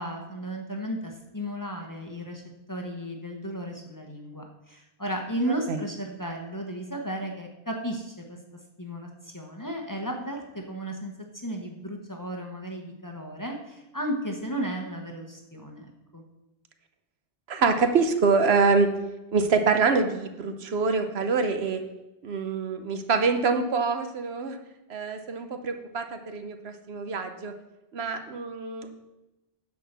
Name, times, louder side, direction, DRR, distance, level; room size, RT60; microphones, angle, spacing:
voice 1, 0.0-2.4 2.7-8.4 8.8-16.2, right 1 dB, 20° left, 1 dB, 1.0 m, -34 dB
voice 2, 17.5-18.9 19.3-21.8 22.2-24.6 24.9-27.5 27.9-29.1, right 4 dB, 70° right, 7 dB, 1.1 m, -25 dB
9.9 x 4.7 x 6.7 m, 0.99 s
omnidirectional pair, 1.1 m